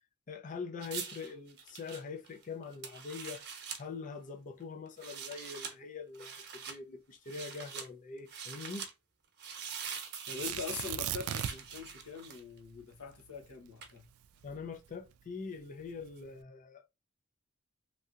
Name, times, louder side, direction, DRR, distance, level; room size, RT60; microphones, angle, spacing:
voice 1, 0.3-3.5 3.8-8.8 14.4-17.0, left 5 dB, 35° left, 0.4 m, -43 dB
sound 1, 0.8-3.8 4.9-5.7 6.1-6.8 7.3-7.9 8.3-8.9 9.4-12.6 13.8-14.0, right 6 dB, 50° right, 0.8 m, -43 dB
voice 2, 10.3-14.0, left 5 dB, 85° left, 0.9 m, -43 dB
Tearing, 10.4-11.8 12.1-12.2 12.7-15.1 15.8-16.3, right 10 dB, 75° right, 0.3 m, -38 dB
3.2 x 2.7 x 2.3 m
head